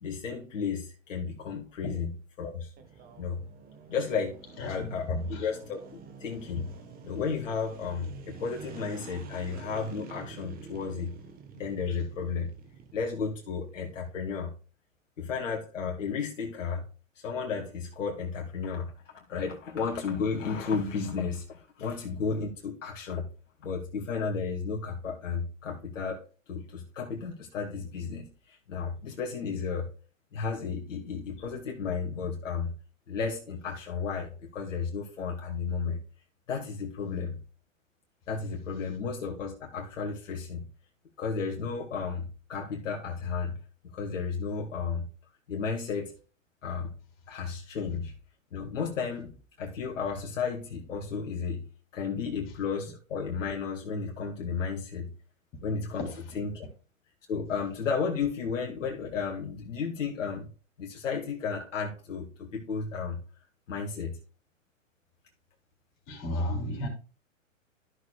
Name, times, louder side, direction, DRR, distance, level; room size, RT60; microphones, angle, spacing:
voice 1, 0.0-2.1 2.4-2.7 3.2-3.4 3.9-4.4 4.6-6.7 7.0-11.1 11.5-12.5 12.9-14.5 15.2-16.8 17.2-23.2 23.6-26.2 26.5-29.9 30.3-32.7 33.1-36.0 36.5-37.3 38.3-40.6 41.2-43.6 43.9-45.1 45.5-46.1 46.6-46.9 47.3-48.1 48.5-49.3 49.6-51.6 51.9-55.1 55.6-56.1 56.3-56.6 57.3-60.5 60.8-63.2 63.7-64.1, left 5 dB, 65° left, -1 dB, 2.2 m, -33 dB
sound 1, 2.8-14.1, right 6 dB, 20° right, 1.3 m, -48 dB
voice 2, 4.6-5.5 11.9-12.0 56.1-56.2 66.1-66.9, left 1 dB, 30° left, 2 dB, 3.7 m, -33 dB
14.0 x 6.5 x 2.4 m, 0.37 s
hypercardioid pair, 120°, 40 cm